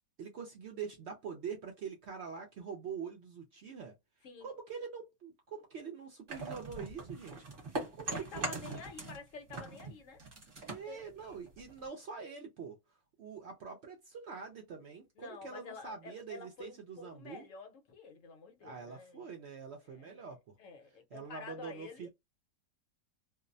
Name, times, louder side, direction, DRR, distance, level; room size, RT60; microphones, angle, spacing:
voice 1, 0.2-3.9 4.4-7.4 7.9-8.8 10.6-12.8 13.2-17.5 18.6-20.6 21.1-22.1, right 6 dB, 65° right, 0.7 m, -45 dB
sound 1, 6.3-9.2 9.5-11.9, right 3 dB, 40° right, 1.1 m, -41 dB
voice 2, 8.1-10.2 10.8-11.4 15.2-19.3 19.9-20.2 20.6-22.1, left 5 dB, 65° left, 1.0 m, -49 dB
2.6 x 2.0 x 2.5 m
omnidirectional pair, 1.5 m